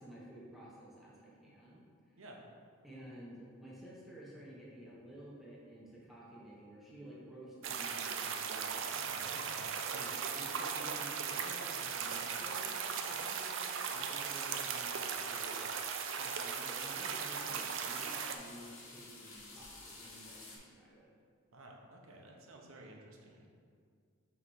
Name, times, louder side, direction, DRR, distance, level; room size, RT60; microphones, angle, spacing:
voice 1, 0.0-1.8 2.8-9.2 9.9-15.7 16.2-21.1, right 1 dB, ahead, -7 dB, 1.0 m, -52 dB
sound 1, 7.6-18.4, right 6 dB, 65° right, 0.4 m, -38 dB
voice 2, 9.1-9.8 21.5-23.5, right 1 dB, 85° right, 1 dB, 0.9 m, -53 dB
sound 2, 11.7-20.6, left 3 dB, 70° left, 1.2 m, -53 dB
5.8 x 3.3 x 5.5 m, 2.1 s
head